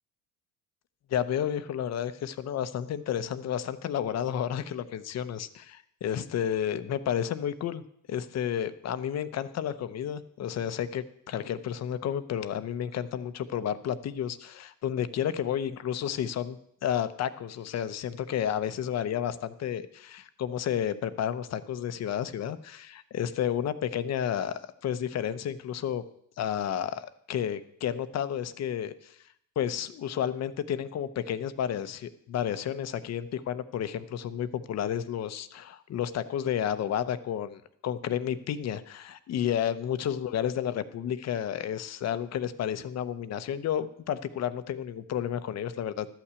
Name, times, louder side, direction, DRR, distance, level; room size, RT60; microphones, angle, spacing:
voice 1, 1.1-7.8 8.1-26.0 26.4-29.2 29.6-46.1, left 9 dB, 50° left, 13 dB, 0.8 m, -31 dB
12.5 x 5.9 x 8.2 m, 0.71 s
cardioid pair, 110°, 35 cm